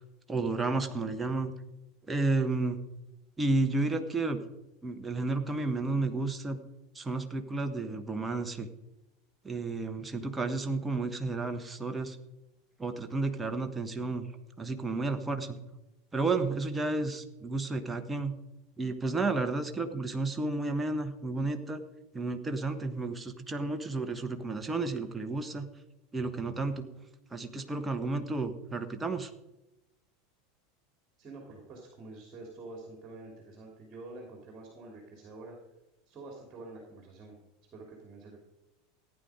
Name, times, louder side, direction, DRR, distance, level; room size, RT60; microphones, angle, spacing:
voice 1, 0.3-1.5 2.1-2.8 3.4-4.4 4.8-6.6 6.9-8.7 9.4-12.2 12.8-14.3 14.6-15.6 16.1-18.4 18.8-21.8 22.1-25.7 26.1-26.9 27.3-29.3, right 3 dB, 15° right, 7 dB, 1.2 m, -32 dB
voice 2, 31.2-35.6 36.1-37.4 37.7-38.4, right 2 dB, 30° right, 0 dB, 3.1 m, -47 dB
15.0 x 9.5 x 5.0 m, 0.97 s
figure-of-eight pair, 80°, 0 cm